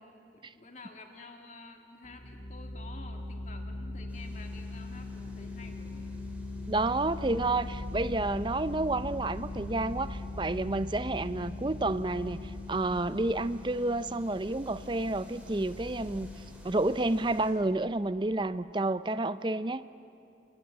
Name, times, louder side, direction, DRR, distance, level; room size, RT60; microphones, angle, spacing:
voice 1, 0.3-6.2, left 3 dB, 40° left, 4 dB, 2.0 m, -50 dB
sound 1, 2.0-18.3, left 2 dB, 25° left, 4.6 m, -41 dB
sound 2, 4.1-17.5, right 1 dB, 10° right, 3.3 m, -59 dB
voice 2, 6.7-12.4 12.7-16.3 16.6-19.8, right 2 dB, 25° right, 14 dB, 0.5 m, -30 dB
27.0 x 21.0 x 8.5 m, 2.5 s
head